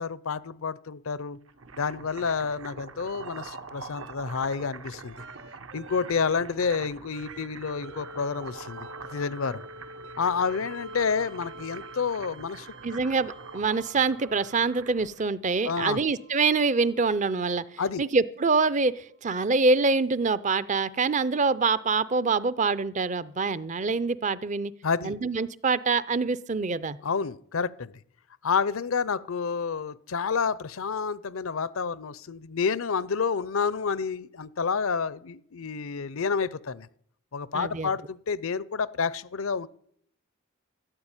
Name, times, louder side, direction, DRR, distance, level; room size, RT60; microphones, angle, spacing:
voice 1, 0.0-1.4 1.8-5.2 5.7-9.6 10.2-12.7 15.6-16.0 17.8-18.0 24.8-25.1 27.0-27.9 28.4-36.9 37.3-39.7, left 5 dB, 80° left, 19 dB, 0.6 m, -29 dB
sound 1, 1.3-15.2, right 4 dB, 75° right, 1.4 m, -45 dB
sound 2, 3.1-4.1 4.5-15.2 16.1-17.7 19.4-19.5, right 2 dB, 60° right, 1.1 m, -47 dB
voice 2, 12.8-17.6 18.0-24.7 25.0-27.0 37.5-37.9, right 4 dB, 35° right, 19 dB, 0.5 m, -25 dB
13.5 x 11.5 x 8.9 m, 0.67 s
head